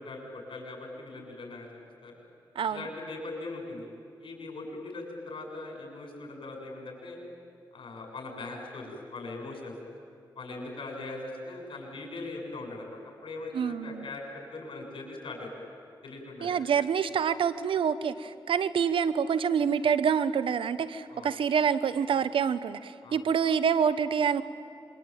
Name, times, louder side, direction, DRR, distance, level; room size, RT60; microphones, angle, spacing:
voice 1, 0.0-2.2 2.7-3.9 4.2-7.2 7.7-9.7 10.4-14.2 14.5-15.5 16.0-16.5 21.1-21.3 23.0-23.2, left 2 dB, 75° left, 1 dB, 7.4 m, -40 dB
voice 2, 2.5-2.9 13.5-14.0 16.4-24.4, right 7 dB, 90° right, 14 dB, 0.9 m, -27 dB
25.5 x 24.0 x 9.0 m, 2.4 s
cardioid pair, 55°, 9 cm